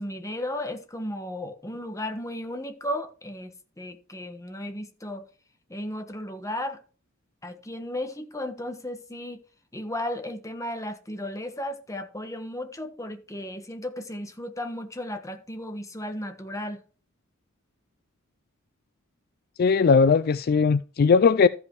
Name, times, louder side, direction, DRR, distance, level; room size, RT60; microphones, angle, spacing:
voice 1, 0.0-5.2 5.7-6.8 7.4-9.4 9.7-16.8, left 1 dB, 15° left, 1.4 m, -34 dB
voice 2, 19.6-21.5, left 5 dB, 50° left, 0.4 m, -19 dB
13.5 x 5.4 x 4.7 m
head